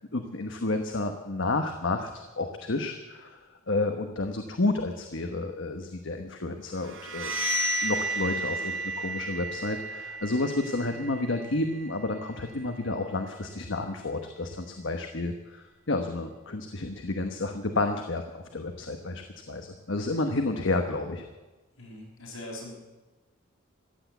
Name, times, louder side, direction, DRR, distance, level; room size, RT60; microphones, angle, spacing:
voice 1, 0.1-3.4 3.7-7.3 7.8-21.2, left 2 dB, 65° left, 5 dB, 1.1 m, -30 dB
sound 1, 6.8-12.5, right 2 dB, 65° right, 2.1 m, -33 dB
voice 2, 21.8-22.8, left 1 dB, 80° left, -2 dB, 5.6 m, -41 dB
15.5 x 10.5 x 8.1 m, 1.2 s
head